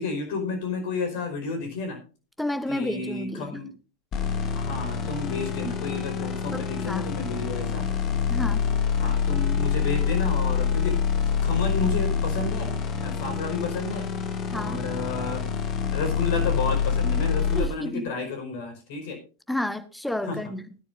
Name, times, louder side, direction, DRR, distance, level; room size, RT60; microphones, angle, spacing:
voice 1, 0.0-2.0 2.7-3.7 4.5-7.9 9.0-11.0 11.4-12.7 13.0-14.1 14.5-15.5 15.9-19.2 20.3-20.5, left 4 dB, 50° left, 5.1 m, -31 dB
voice 2, 2.4-3.6 6.5-7.1 8.3-8.6 14.5-14.8 17.6-18.1 19.5-20.6, left 1 dB, 5° left, 0.9 m, -31 dB
sound 1, 4.1-17.6, left 6 dB, 30° left, 2.0 m, -26 dB
19.5 x 10.5 x 2.6 m
figure-of-eight pair, 90°, 0 cm